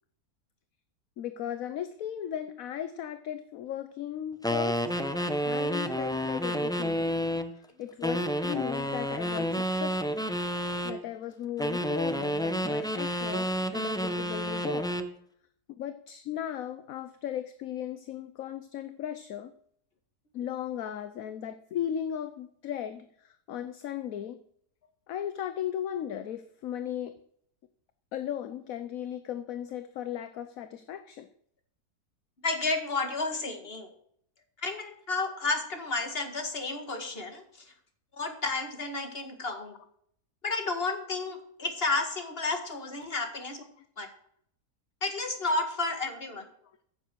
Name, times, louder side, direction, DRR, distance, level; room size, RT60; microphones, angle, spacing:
voice 1, 1.2-4.8 5.4-7.1 7.5-10.2 10.8-15.0 15.8-19.5 20.3-24.4 25.1-27.2 28.1-31.3, left 10 dB, 65° left, 10 dB, 1.1 m, -36 dB
sound 1, 4.4-7.5 8.0-11.0 11.6-15.1, equal, 5° left, 0.4 m, -30 dB
voice 2, 32.4-33.9 34.6-37.7 38.2-39.8 40.4-43.6 44.0-44.1 45.0-46.5, left 3 dB, 35° left, 5 dB, 2.2 m, -32 dB
15.0 x 7.4 x 6.2 m, 0.66 s
omnidirectional pair, 1.7 m